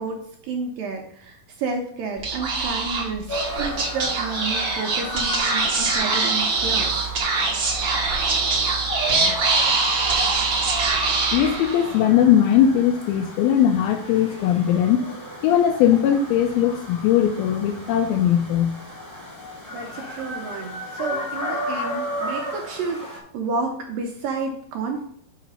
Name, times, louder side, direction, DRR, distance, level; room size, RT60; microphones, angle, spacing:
voice 1, 0.0-3.3 3.6-7.1 19.7-23.1 23.3-25.0, right 4 dB, 75° right, 2 dB, 2.2 m, -30 dB
Speech / Whispering, 2.2-12.0, right 4 dB, 55° right, 1.3 m, -23 dB
sound 1, 3.3-23.2, left 1 dB, 5° left, 1.9 m, -34 dB
voice 2, 11.3-15.1 15.4-18.8, left 9 dB, 80° left, 3 dB, 2.3 m, -19 dB
6.1 x 5.7 x 5.4 m, 0.63 s
omnidirectional pair, 4.6 m